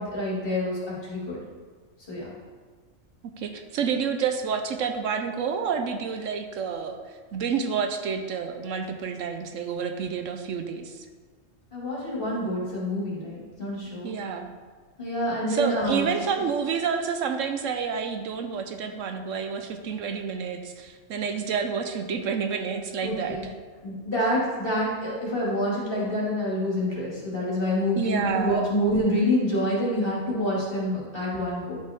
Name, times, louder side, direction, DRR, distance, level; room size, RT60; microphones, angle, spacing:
voice 1, 0.0-1.4 2.1-2.2 11.7-14.1 15.0-16.0 23.0-23.5 23.8-31.8, left 1 dB, 45° left, -6 dB, 2.5 m, -27 dB
voice 2, 3.4-7.0 7.3-11.0 14.0-14.5 15.5-23.5 28.0-28.7, right 6 dB, 75° right, 6 dB, 1.0 m, -29 dB
11.0 x 5.6 x 3.5 m, 1.5 s
omnidirectional pair, 1.4 m